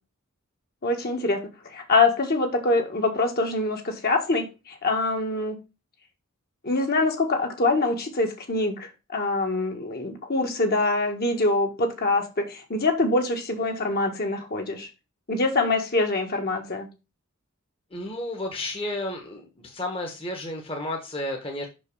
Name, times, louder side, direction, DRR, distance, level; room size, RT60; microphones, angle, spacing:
voice 1, 0.8-1.4 1.7-5.6 6.6-14.9 15.3-16.9, left 2 dB, 45° left, 3 dB, 1.6 m, -24 dB
voice 2, 17.9-21.7, left 1 dB, 25° left, 2 dB, 1.3 m, -32 dB
5.9 x 5.4 x 5.4 m, 0.29 s
head